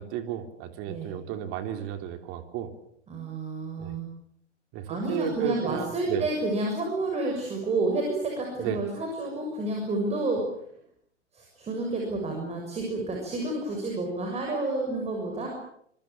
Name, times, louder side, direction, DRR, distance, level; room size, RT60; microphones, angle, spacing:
voice 1, 0.0-2.7 3.8-3.9 4.7-6.3 8.6-8.8, right 10 dB, 35° right, 8 dB, 3.3 m, -33 dB
voice 2, 3.1-4.1 4.9-10.4 11.3-15.5, right 2 dB, 15° right, 1 dB, 6.8 m, -30 dB
27.0 x 24.0 x 7.3 m, 0.69 s
figure-of-eight pair, 105°, 36 cm